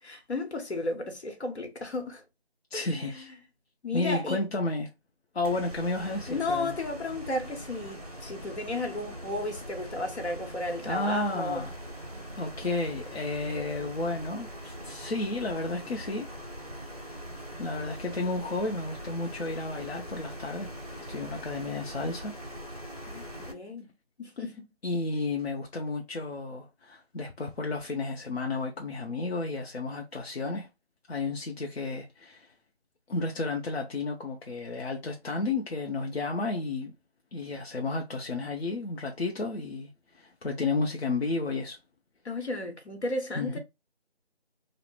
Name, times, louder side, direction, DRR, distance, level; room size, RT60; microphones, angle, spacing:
voice 1, 0.0-2.2 2.7-3.3 3.8-4.4 6.3-11.7 23.0-23.9 24.2-24.7 42.2-43.6, left 2 dB, 85° left, 0.9 m, -34 dB
voice 2, 2.7-3.3 3.9-4.9 5.3-6.7 10.9-11.7 12.4-16.3 17.6-20.7 21.0-22.3 24.8-30.7 31.1-32.5 33.1-36.9 37.3-41.8 43.3-43.6, left 3 dB, 70° left, 0.6 m, -32 dB
sound 1, 5.4-23.5, equal, 35° right, 0.5 m, -42 dB
2.3 x 2.0 x 3.1 m
figure-of-eight pair, 170°, 32 cm